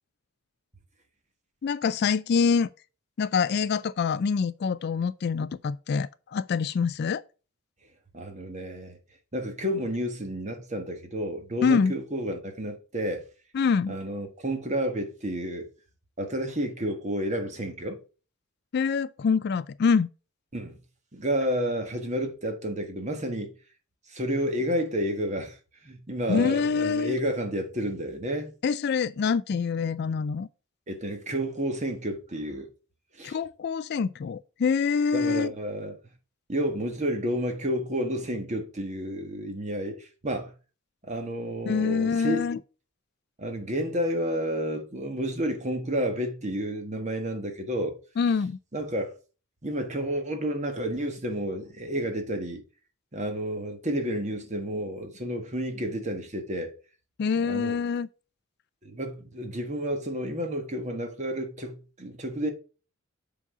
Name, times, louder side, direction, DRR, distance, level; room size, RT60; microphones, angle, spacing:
voice 1, 1.6-2.7 3.2-7.2 11.6-11.9 13.5-13.9 18.7-20.1 26.3-27.2 28.6-30.5 33.2-35.5 41.7-42.6 48.2-48.6 57.2-58.1, left 5 dB, 50° left, 0.3 m, -25 dB
voice 2, 8.1-9.0 9.3-13.2 13.9-15.7 16.2-18.0 20.5-20.8 21.1-23.5 24.1-28.5 30.9-32.7 33.1-33.4 35.1-36.0 36.5-40.5 41.0-42.5 43.4-47.9 48.7-49.1 49.6-52.6 53.1-56.7 57.4-57.7 58.8-62.5, equal, 30° right, 1.5 m, -30 dB
7.4 x 4.0 x 4.8 m
head